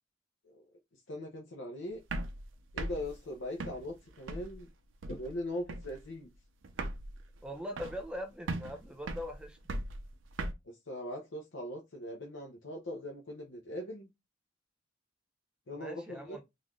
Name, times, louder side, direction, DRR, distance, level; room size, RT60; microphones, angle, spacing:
voice 1, 1.1-2.0 2.7-4.7 5.1-6.3 10.6-14.1 15.7-16.4, left 1 dB, 80° left, 0.7 m, -40 dB
sound 1, 2.0-4.7 5.0-5.4 5.7-6.1 6.3-6.4 6.6-8.2 8.5-10.5, right 2 dB, 85° right, 0.6 m, -39 dB
voice 2, 7.4-9.6 15.8-16.4, equal, 5° right, 0.6 m, -41 dB
3.9 x 2.5 x 3.1 m
head